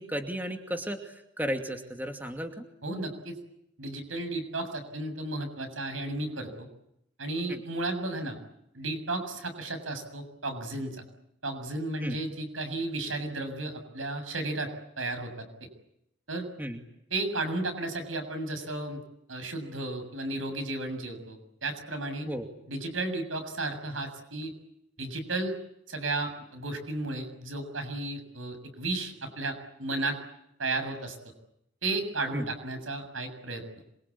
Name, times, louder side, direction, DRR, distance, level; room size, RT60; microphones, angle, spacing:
voice 1, 0.0-2.6 7.5-7.6 12.0-12.2 16.6-16.8 22.2-22.5 32.3-32.4, equal, 10° right, 4 dB, 2.6 m, -34 dB
voice 2, 2.8-3.4 3.8-6.7 7.2-8.4 8.7-11.0 11.4-14.7 15.0-15.5 16.3-16.5 17.1-19.0 19.3-22.3 22.7-24.5 25.0-25.5 25.9-30.2 30.6-31.2 31.8-33.6, right 2 dB, 90° right, 7 dB, 7.2 m, -33 dB
27.0 x 24.0 x 8.7 m, 0.80 s
head